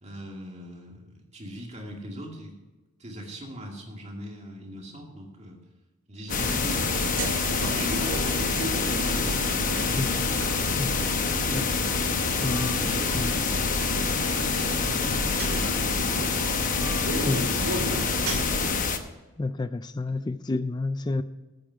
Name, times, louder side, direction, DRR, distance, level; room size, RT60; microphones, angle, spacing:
voice 1, 0.0-2.6 3.0-5.6 6.1-10.0 11.2-12.3 12.8-16.7 17.1-18.2 20.0-20.1, equal, 30° right, 0 dB, 2.2 m, -41 dB
sound 1, 6.3-19.0, left 5 dB, 35° left, 0.9 m, -27 dB
sound 2, 6.3-18.8, equal, 75° right, 2.2 m, -31 dB
voice 2, 10.0-10.3 10.8-10.9 11.5-11.6 12.4-12.8 13.1-13.4 17.3-17.6 19.4-21.2, left 3 dB, 20° left, 13 dB, 0.3 m, -30 dB
14.0 x 8.8 x 4.8 m, 1.2 s
head